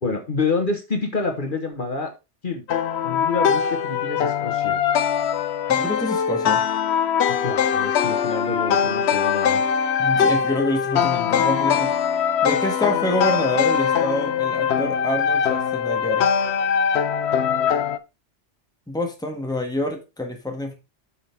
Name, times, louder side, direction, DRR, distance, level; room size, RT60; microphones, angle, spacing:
voice 1, 0.0-2.1 2.4-2.6 3.0-4.8 7.4-9.6, left 4 dB, 45° left, 4 dB, 1.5 m, -27 dB
sound 1, 2.7-18.0, left 7 dB, 70° left, 0.9 m, -22 dB
voice 2, 5.7-6.6 10.0-11.9 12.4-16.3 18.9-20.7, left 1 dB, 5° left, 3 dB, 1.6 m, -27 dB
8.6 x 6.0 x 3.5 m, 0.26 s
omnidirectional pair, 1.2 m